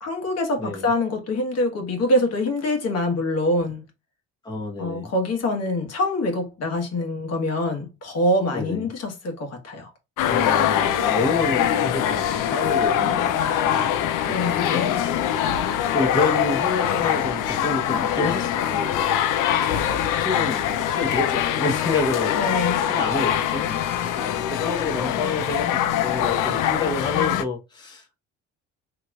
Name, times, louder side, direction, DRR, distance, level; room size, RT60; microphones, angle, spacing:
voice 1, 0.0-3.8 4.8-9.9 14.3-14.6 22.4-22.8, left 1 dB, 50° left, 1.2 m, -25 dB
voice 2, 4.4-5.1 8.5-8.9 10.2-19.5 19.8-22.6 22.9-28.2, left 3 dB, 15° left, 0.9 m, -29 dB
sound 1, 10.2-27.4, left 10 dB, 65° left, 0.5 m, -23 dB
2.9 x 2.9 x 2.3 m
supercardioid pair, 80°, 33 cm